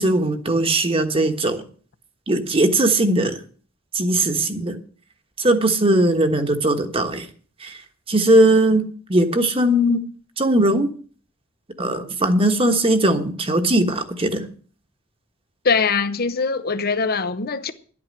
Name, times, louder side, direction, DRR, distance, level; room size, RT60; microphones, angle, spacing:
voice 1, 0.0-1.6 2.3-3.3 3.9-4.8 5.4-7.2 8.1-8.8 9.1-10.0 10.4-10.9 11.8-14.4, right 1 dB, 30° right, 1.3 m, -19 dB
voice 2, 15.6-17.7, left 5 dB, 50° left, 0.8 m, -22 dB
11.5 x 8.7 x 7.5 m
head